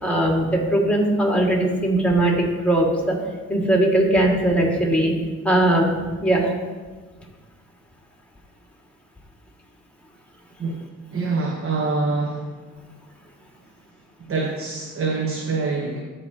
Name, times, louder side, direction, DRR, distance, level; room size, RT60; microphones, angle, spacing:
voice 1, 0.0-2.4 2.6-3.2 3.5-5.1 5.4-5.9 6.2-6.5, right 1 dB, 5° left, -2 dB, 2.0 m, -19 dB
voice 2, 11.1-12.5 14.2-16.0, right 3 dB, 45° right, -1 dB, 1.1 m, -25 dB
13.5 x 5.0 x 2.9 m, 1.4 s
cardioid pair, 90°, 30 cm